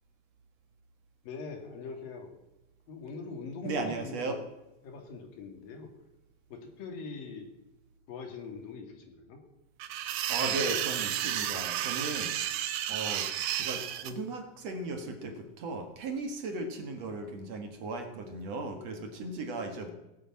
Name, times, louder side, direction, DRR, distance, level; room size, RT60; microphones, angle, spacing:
voice 1, 1.2-2.3 2.9-4.4 4.8-5.9 6.5-7.5 8.1-9.4, left 4 dB, 85° left, 4 dB, 4.0 m, -42 dB
voice 2, 3.6-4.4 10.1-12.6 12.9-19.9, right 2 dB, 55° right, 5 dB, 2.5 m, -37 dB
sound 1, 9.8-14.1, right 11 dB, 85° right, 2.6 m, -32 dB
17.0 x 8.6 x 8.7 m, 0.97 s
omnidirectional pair, 3.9 m